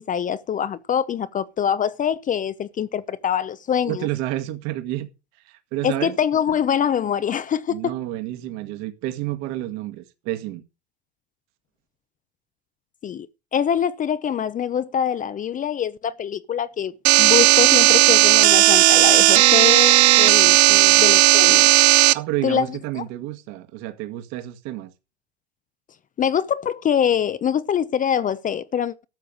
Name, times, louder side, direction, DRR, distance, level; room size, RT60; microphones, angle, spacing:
voice 1, 0.0-4.1 5.8-7.9 13.0-20.6 21.0-21.7 22.4-22.7 22.9-23.0 26.2-29.0, left 8 dB, 25° left, 0.7 m, -24 dB
voice 2, 3.9-5.1 5.4-6.2 7.7-10.6 20.4-21.0 22.1-24.9, right 15 dB, 55° right, 2.0 m, -30 dB
sound 1, 17.0-22.1, right 15 dB, 75° right, 0.8 m, -14 dB
13.0 x 6.9 x 6.5 m
hypercardioid pair, 100°, 32 cm